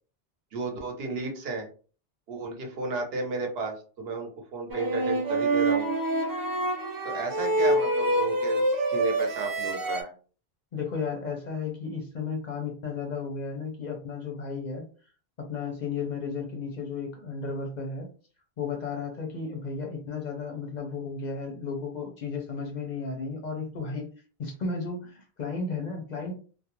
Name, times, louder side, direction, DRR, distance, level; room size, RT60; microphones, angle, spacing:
voice 1, 0.5-1.7 2.3-5.9 7.0-10.1, right 3 dB, 70° right, 2 dB, 0.9 m, -33 dB
sound 1, 4.7-10.0, right 1 dB, 35° right, 0.3 m, -26 dB
voice 2, 10.7-14.8 15.4-18.1 18.6-24.1 24.4-26.3, left 4 dB, 55° left, 2 dB, 0.6 m, -34 dB
2.4 x 2.1 x 2.9 m, 0.39 s
omnidirectional pair, 1.1 m